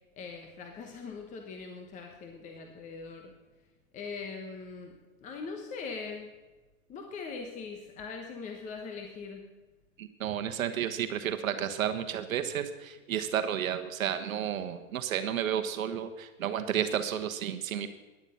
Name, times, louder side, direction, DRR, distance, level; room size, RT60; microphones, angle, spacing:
voice 1, 0.2-3.3 3.9-6.3 6.9-9.5, left 4 dB, 15° left, 3 dB, 1.1 m, -41 dB
voice 2, 10.0-17.9, right 9 dB, 70° right, 8 dB, 1.2 m, -32 dB
15.0 x 11.0 x 5.6 m, 1.2 s
hypercardioid pair, 145°, 42 cm